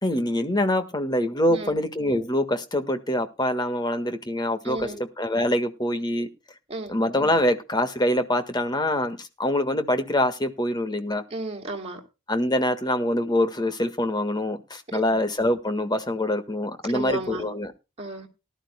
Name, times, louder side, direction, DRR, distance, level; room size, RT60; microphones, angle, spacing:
voice 1, 0.0-6.3 6.9-11.2 12.3-17.7, left 1 dB, 20° left, 8 dB, 1.5 m, -25 dB
voice 2, 4.6-5.0 6.7-6.9 11.3-12.0 14.9-15.2 16.9-17.4 18.0-18.3, right 2 dB, 30° right, 2 dB, 3.2 m, -33 dB
19.0 x 12.0 x 2.2 m, 0.27 s
head